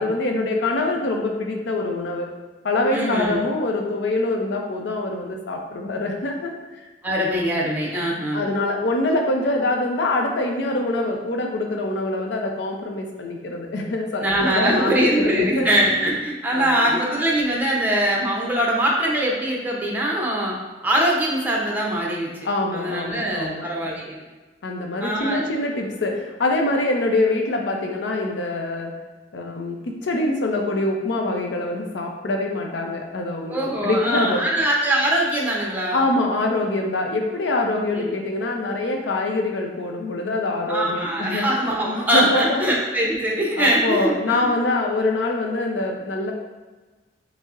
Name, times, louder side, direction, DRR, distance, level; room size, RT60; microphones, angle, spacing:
voice 1, 0.0-2.3 2.6-6.5 8.3-16.0 16.5-16.9 22.4-23.9 24.6-28.9 29.3-34.5 35.9-41.6 41.9-42.6 43.6-46.3, left 2 dB, 80° left, 2 dB, 0.5 m, -24 dB
voice 2, 2.9-3.4 7.0-8.4 14.2-20.6 20.8-22.3 22.7-24.2 25.0-25.4 33.5-36.0 37.9-38.1 40.7-44.5, right 1 dB, 10° right, -3 dB, 0.6 m, -22 dB
5.2 x 2.0 x 2.4 m, 1.3 s
head